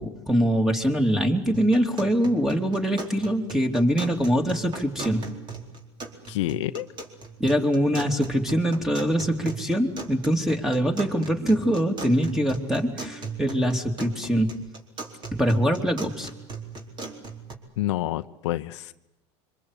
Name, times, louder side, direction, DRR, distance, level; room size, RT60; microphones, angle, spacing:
voice 1, 0.0-5.2 7.4-14.6 15.3-16.3, equal, 5° right, 5 dB, 3.3 m, -23 dB
sound 1, 1.5-17.5, right 4 dB, 30° right, 4.4 m, -39 dB
voice 2, 6.3-6.9 17.8-18.9, left 15 dB, 80° left, 10 dB, 0.9 m, -28 dB
26.5 x 25.0 x 8.5 m, 0.93 s
supercardioid pair, 110°, 15 cm